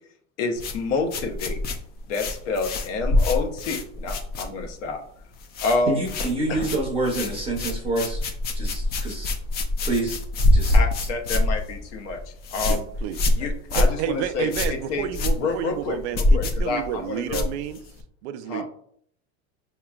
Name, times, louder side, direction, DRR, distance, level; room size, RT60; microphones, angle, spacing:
voice 1, 0.4-1.6 2.1-5.0 5.6-6.0 6.5-6.7 10.7-12.8 13.4-15.1 15.4-17.5 18.5-18.6, left 3 dB, 75° left, 4 dB, 0.9 m, -28 dB
sound 1, 0.6-4.9 5.2-5.8 6.0-18.0, left 2 dB, 30° left, 0.4 m, -25 dB
voice 2, 5.9-8.2 8.5-9.3 9.8-10.2 10.5-10.8 13.7-13.8, right 2 dB, 15° right, -1 dB, 0.7 m, -27 dB
voice 3, 12.7-13.2 13.8-17.8 18.2-18.6, right 10 dB, 70° right, 11 dB, 0.5 m, -30 dB
4.9 x 3.0 x 2.3 m, 0.64 s
supercardioid pair, 135°, 36 cm